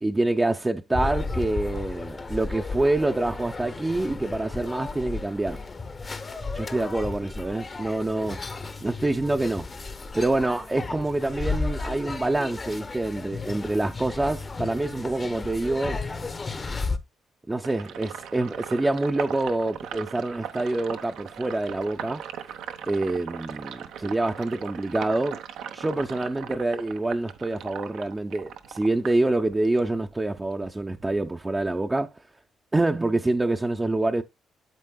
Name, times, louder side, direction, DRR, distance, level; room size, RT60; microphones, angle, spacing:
voice 1, 0.0-5.6 6.5-8.4 8.8-9.7 10.1-16.0 17.5-22.2 22.9-25.4 25.7-32.1 32.7-34.2, right 2 dB, 15° right, 0.5 m, -26 dB
sound 1, 0.9-17.0, left 3 dB, 30° left, 0.8 m, -34 dB
Sink (filling or washing), 17.6-29.9 30.3-31.7, right 8 dB, 85° right, 0.8 m, -39 dB
9.1 x 7.5 x 2.2 m
cardioid pair, 90°, 0 cm